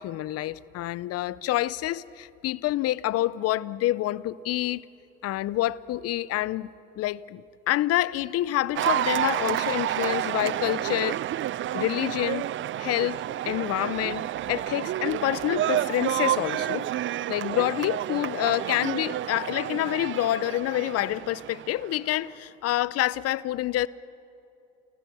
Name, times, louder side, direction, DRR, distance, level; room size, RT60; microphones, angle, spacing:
voice 1, 0.0-4.8 5.2-6.7 7.0-7.4 7.7-11.2 11.7-12.5 12.8-13.2 13.5-16.9 17.3-23.9, left 15 dB, 55° left, 0.6 m, -27 dB
Cheering / Applause, 8.8-22.1, right 12 dB, 40° right, 0.5 m, -30 dB
29.0 x 15.0 x 6.2 m
hypercardioid pair, 70°, 30 cm